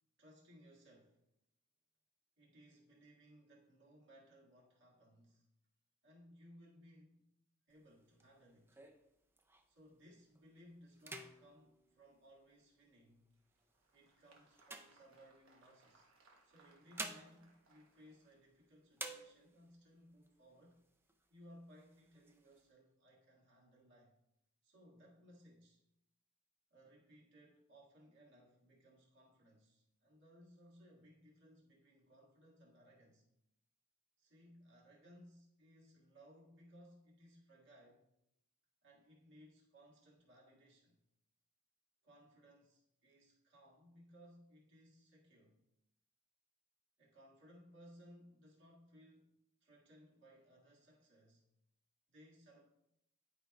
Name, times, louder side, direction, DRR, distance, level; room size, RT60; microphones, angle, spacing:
voice 1, 0.2-1.2 2.4-5.5 6.0-7.3 7.7-8.8 9.7-13.3 13.9-16.1 16.4-20.8 21.3-24.2 24.6-25.8 26.7-33.3 34.2-38.0 38.8-41.0 42.0-45.6 47.0-49.3 49.6-51.5 52.1-52.6, equal, 60° right, -4 dB, 1.9 m, -63 dB
sound 1, 7.7-9.9 10.4-10.6 10.9-12.9 13.5-15.7 16.6-18.6 18.9-19.8 20.2-20.3 20.6-21.3 21.7-22.6, right 2 dB, 10° right, 0.4 m, -52 dB
Applause, 13.3-18.6, right 3 dB, 75° right, 1.2 m, -70 dB
10.5 x 5.0 x 2.3 m, 0.82 s
head